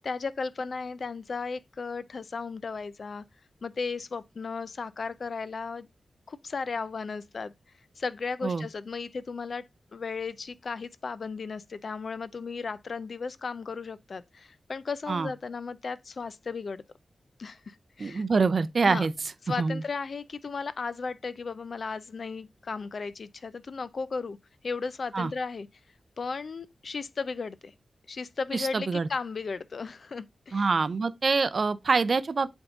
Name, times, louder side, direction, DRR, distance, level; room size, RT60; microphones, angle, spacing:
voice 1, 0.0-3.2 3.6-5.9 6.3-7.5 8.0-9.7 9.9-16.8 17.4-18.2 18.8-19.1 19.4-24.4 24.6-25.7 26.2-27.7 28.1-30.7, left 4 dB, 55° left, 0.5 m, -35 dB
voice 2, 18.0-19.1 19.6-19.8 25.1-25.3 28.5-29.1 30.5-32.5, right 4 dB, 50° right, 0.5 m, -25 dB
7.9 x 3.6 x 3.6 m
wide cardioid pair, 115°, 0 cm